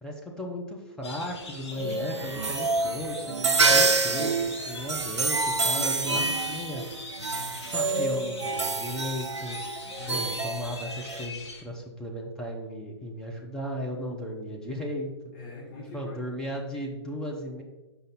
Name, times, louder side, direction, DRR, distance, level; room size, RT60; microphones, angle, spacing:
voice 1, 0.0-6.8 7.6-9.6 10.1-15.1 15.9-17.6, equal, 5° left, -2 dB, 0.8 m, -35 dB
sound 1, 1.0-11.6, left 3 dB, 70° left, 2.0 m, -42 dB
sound 2, 1.7-11.3, right 3 dB, 85° right, 0.5 m, -27 dB
voice 2, 7.2-7.7 9.9-10.4 15.3-16.2, left 3 dB, 45° left, -5 dB, 2.5 m, -43 dB
6.4 x 5.2 x 4.1 m, 1.1 s
figure-of-eight pair, 125°, 15 cm